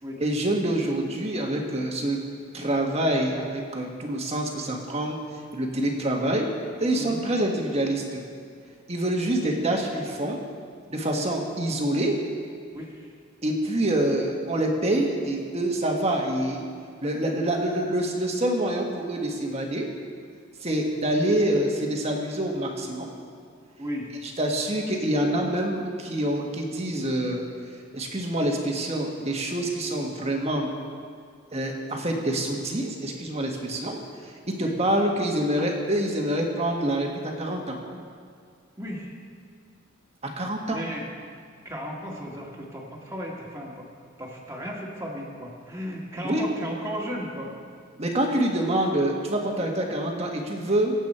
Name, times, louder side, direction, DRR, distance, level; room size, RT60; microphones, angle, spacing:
voice 1, 0.2-2.2 2.5-5.2 5.5-6.5 6.8-8.2 8.9-10.5 10.9-12.2 13.4-16.6 17.0-19.9 20.6-23.1 24.2-27.4 27.9-30.7 31.5-37.8 40.4-40.8 46.2-46.4 48.0-50.9, right 1 dB, 30° right, 1 dB, 1.6 m, -26 dB
voice 2, 12.7-13.1 23.8-24.1 33.6-33.7 34.6-34.7 38.8-39.1 40.7-41.0 41.6-43.9 44.2-47.5, equal, 15° right, -3 dB, 2.0 m, -35 dB
24.0 x 8.3 x 4.4 m, 2.2 s
head